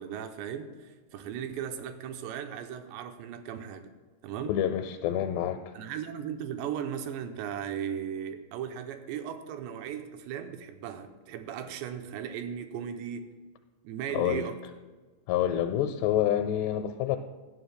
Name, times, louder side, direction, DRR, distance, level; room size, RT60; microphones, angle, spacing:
voice 1, 0.0-3.9 4.2-4.6 5.7-13.3 13.8-14.6, right 8 dB, 85° right, 7 dB, 2.9 m, -37 dB
voice 2, 4.5-5.6 14.1-14.5 15.3-17.2, left 11 dB, 80° left, 6 dB, 2.7 m, -27 dB
17.0 x 11.5 x 2.2 m, 1.3 s
omnidirectional pair, 5.0 m